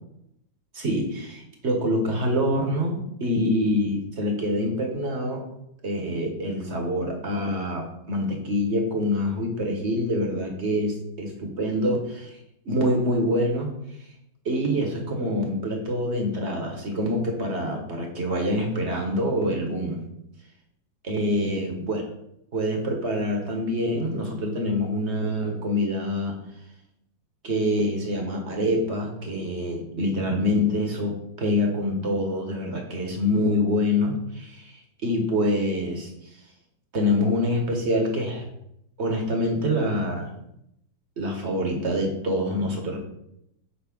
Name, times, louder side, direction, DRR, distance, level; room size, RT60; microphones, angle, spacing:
voice 1, 0.7-5.4 5.8-12.4 12.6-13.7 14.4-20.0 21.0-22.0 22.5-26.4 27.4-34.7 35.0-36.1 36.9-38.4 39.0-40.3 41.2-43.0, left 1 dB, 40° right, 2 dB, 1.5 m, -25 dB
8.5 x 3.1 x 6.1 m, 0.77 s
omnidirectional pair, 2.0 m